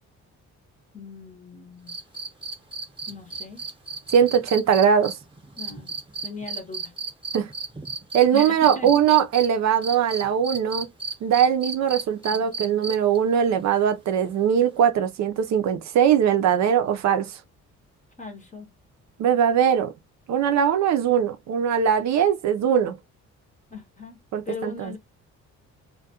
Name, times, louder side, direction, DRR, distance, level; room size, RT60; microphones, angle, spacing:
voice 1, 0.9-2.0 3.1-3.6 5.6-5.9 6.2-6.9 8.3-8.9 18.2-18.7 23.7-24.2 24.5-25.0, left 4 dB, 25° left, 0.7 m, -38 dB
sound 1, 1.9-9.5 9.8-13.2 14.8-14.9, right 4 dB, 15° right, 0.8 m, -33 dB
voice 2, 4.1-5.1 7.3-7.5 8.1-10.9 11.2-17.4 19.2-19.9 20.3-23.0 24.3-24.9, right 8 dB, 65° right, 0.5 m, -21 dB
2.2 x 2.2 x 2.7 m
cardioid pair, 90°, 30 cm